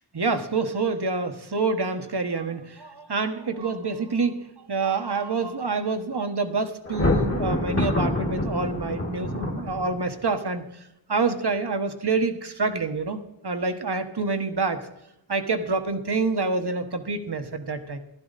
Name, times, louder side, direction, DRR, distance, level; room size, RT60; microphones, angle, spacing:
voice 1, 0.1-4.4 4.7-10.6 11.1-14.8 15.3-18.0, right 4 dB, 55° right, 7 dB, 1.4 m, -27 dB
Thunder, 6.8-10.2, left 1 dB, 30° left, 1.7 m, -26 dB
14.5 x 11.5 x 4.2 m, 0.86 s
wide cardioid pair, 45°, 46 cm